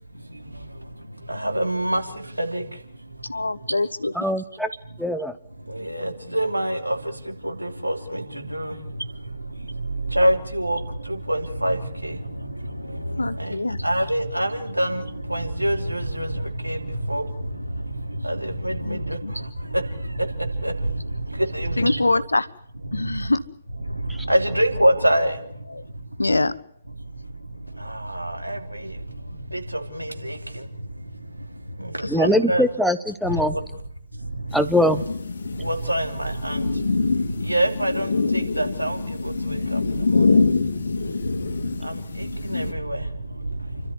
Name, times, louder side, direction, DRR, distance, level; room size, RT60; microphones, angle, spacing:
voice 1, 0.1-3.7 5.6-22.0 22.9-23.3 23.8-26.2 27.0-32.6 33.3-33.6 34.1-35.1 35.5-43.9, right 1 dB, 90° right, 3.1 m, -27 dB
voice 2, 3.2-4.1 13.2-13.8 18.8-19.3 21.8-22.5 22.9-23.4 25.7-25.8 26.2-26.5 32.0-32.3, left 2 dB, 80° left, 1.1 m, -24 dB
voice 3, 4.2-4.7 5.0-5.3 32.1-33.6 34.5-35.0, left 1 dB, ahead, 0.9 m, -21 dB
sound 1, 34.5-42.7, left 4 dB, 60° left, 2.3 m, -25 dB
29.5 x 13.0 x 9.8 m
figure-of-eight pair, 135°, 0 cm